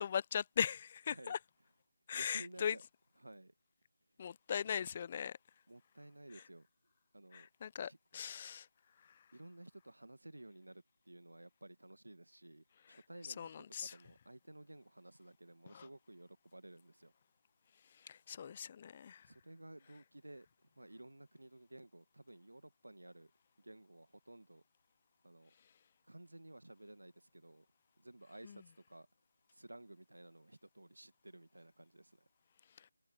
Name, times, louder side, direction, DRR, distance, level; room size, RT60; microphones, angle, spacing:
voice 1, 0.0-1.4 2.1-2.8 4.2-5.4 6.3-6.4 7.3-8.7 9.0-9.2 12.9-13.0 13.2-14.0 15.7-15.9 18.0-19.3 28.4-28.6 32.8-32.9, left 8 dB, 30° left, 0.4 m, -40 dB
voice 2, 2.1-2.8 3.2-3.5 5.7-6.7 7.1-7.5 7.9-8.0 9.3-17.1 19.2-23.3 23.6-24.6 25.2-25.5 26.1-27.7 28.0-29.1 29.5-32.3, right 1 dB, 85° right, 1.6 m, -55 dB
figure-of-eight pair, 160°, 0 cm